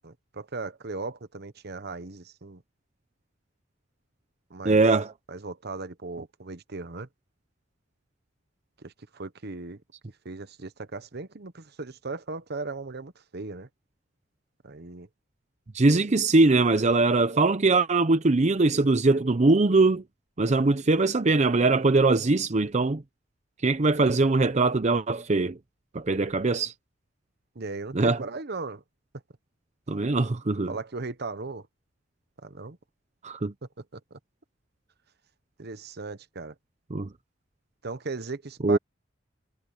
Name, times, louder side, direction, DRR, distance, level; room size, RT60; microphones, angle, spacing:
voice 1, 0.0-2.6 4.5-4.8 5.3-7.1 8.8-9.8 10.2-13.7 14.6-15.1 27.5-28.8 30.7-31.7 32.4-32.8 33.9-34.2 35.6-36.5 37.8-38.8, right 3 dB, 55° right, 1.1 m, -37 dB
voice 2, 4.6-5.1 15.7-20.0 20.4-23.0 23.6-25.6 25.9-26.7 27.9-28.2 29.9-30.7 33.2-33.5 36.9-37.1 38.6-38.8, right 3 dB, 35° right, 0.7 m, -22 dB
head